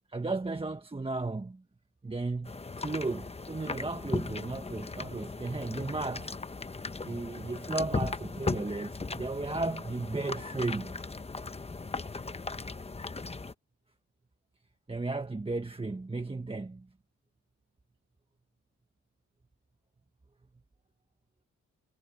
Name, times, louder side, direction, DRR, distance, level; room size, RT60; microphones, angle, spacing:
voice 1, 0.0-1.6 2.0-6.3 7.0-11.0 14.9-16.9, right 3 dB, 20° right, 1.3 m, -35 dB
sound 1, 2.4-13.5, left 3 dB, 20° left, 1.0 m, -37 dB
cardioid pair, 70°, 30 cm